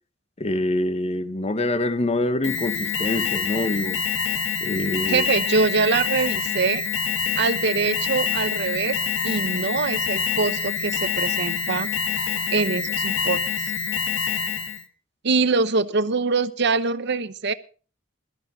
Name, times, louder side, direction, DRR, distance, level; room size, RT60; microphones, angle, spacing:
voice 1, 0.4-4.0 4.6-5.2, left 1 dB, 35° left, 1.0 m, -25 dB
Alarm, 2.4-14.8, left 6 dB, 75° left, 1.4 m, -26 dB
voice 2, 5.1-6.8 7.4-11.9 12.5-13.7 15.2-17.5, right 4 dB, 60° right, 0.9 m, -24 dB
22.0 x 13.0 x 2.7 m
head